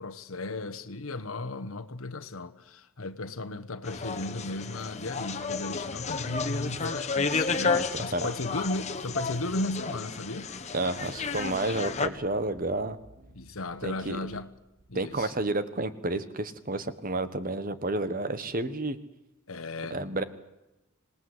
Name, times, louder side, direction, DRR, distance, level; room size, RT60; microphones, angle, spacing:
voice 1, 0.0-10.5 13.3-14.5 14.9-15.3 19.5-20.2, left 2 dB, 90° left, 1.2 m, -35 dB
sound 1, 3.8-12.1, left 4 dB, 35° left, 1.4 m, -32 dB
voice 2, 7.7-8.3 10.7-13.0 13.8-14.3 14.9-19.0 19.9-20.2, right 2 dB, 45° right, 1.5 m, -31 dB
sound 2, 11.7-15.6, right 1 dB, 60° right, 5.9 m, -56 dB
26.0 x 19.5 x 8.0 m
head